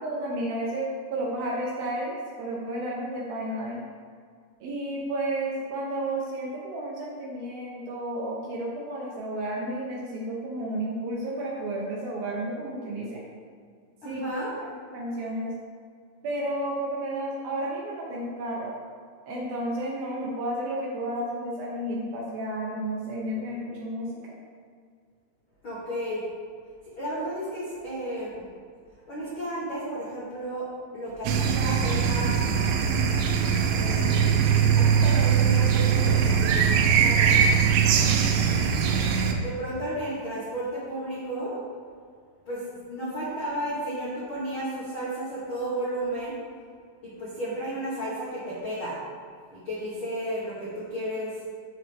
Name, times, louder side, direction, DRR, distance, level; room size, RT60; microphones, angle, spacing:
voice 1, 0.0-3.8 4.6-13.2 14.0-14.4 14.9-15.5 16.2-18.7 19.3-24.1, right 1 dB, 70° right, -4 dB, 2.4 m, -32 dB
voice 2, 14.0-14.6 25.6-26.2 27.0-28.4 29.1-30.7 30.9-32.3 33.8-37.5 39.2-41.6 42.5-42.6 42.9-46.3 47.0-49.0 49.5-51.4, right 1 dB, 70° left, -9 dB, 1.2 m, -33 dB
sound 1, 31.3-39.3, right 7 dB, 90° right, 3.1 m, -21 dB
13.5 x 4.6 x 3.5 m, 2.1 s
omnidirectional pair, 5.2 m